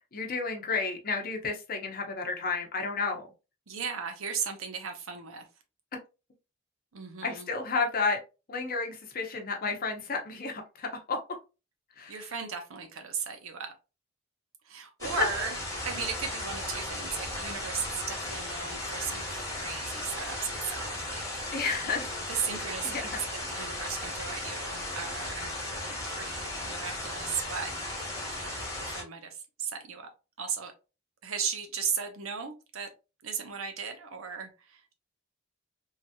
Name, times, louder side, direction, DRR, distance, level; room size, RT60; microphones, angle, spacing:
voice 1, 0.1-3.3 7.2-8.2 8.5-11.2 12.0-12.3 15.2-15.3 21.5-22.1 22.8-23.2, left 4 dB, 45° left, 0.7 m, -31 dB
voice 2, 3.7-5.4 6.9-7.5 12.1-13.7 14.7-15.6 15.8-21.4 22.3-27.8 28.4-30.1 30.4-30.7 31.2-32.9 33.2-34.9, right 6 dB, 85° right, 0.7 m, -36 dB
sound 1, 15.0-29.0, left 1 dB, 15° left, 1.1 m, -36 dB
3.2 x 2.8 x 2.2 m
head